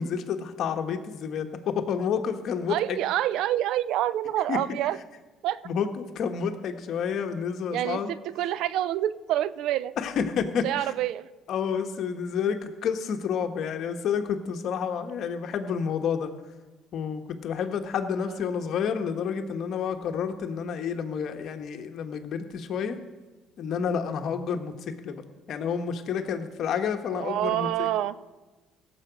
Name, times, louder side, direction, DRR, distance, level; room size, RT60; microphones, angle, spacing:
voice 1, 0.0-3.0 4.5-4.6 5.6-5.9 6.1-8.1 10.0-10.9 11.5-16.3 16.9-23.0 23.6-24.7 25.0-25.2 25.5-27.9, left 7 dB, 60° left, 6 dB, 1.1 m, -29 dB
voice 2, 2.7-5.0 5.4-5.6 7.7-9.9 10.6-11.3 18.2-18.4 27.1-28.2, right 12 dB, 75° right, 17 dB, 0.4 m, -27 dB
16.5 x 7.1 x 5.1 m, 1.2 s
cardioid pair, 110°, 0 cm